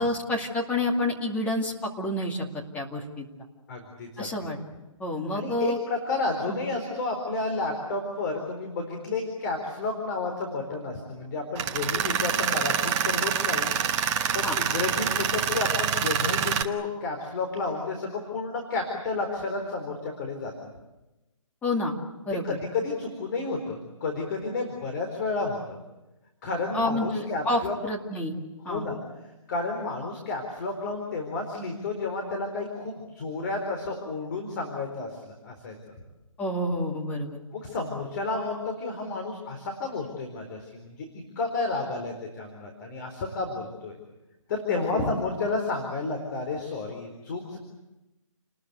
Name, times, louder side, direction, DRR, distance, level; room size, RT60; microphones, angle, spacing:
voice 1, 0.0-2.4 2.7-3.3 4.2-4.6 5.0-5.8 6.5-6.6 14.4-14.6 21.6-21.9 22.3-22.6 26.7-28.3 28.6-28.9 36.4-37.4 44.7-45.1, left 1 dB, 10° left, -1 dB, 2.4 m, -29 dB
voice 2, 3.7-4.3 5.3-13.7 14.3-20.7 22.4-25.8 26.4-27.7 28.7-29.0 29.5-35.9 37.5-41.1 41.4-44.0 44.5-47.6, left 3 dB, 35° left, 2 dB, 4.2 m, -31 dB
Tools, 11.6-16.6, right 8 dB, 15° right, 1.0 m, -26 dB
30.0 x 20.0 x 8.3 m, 1.0 s
hypercardioid pair, 155°, 17 cm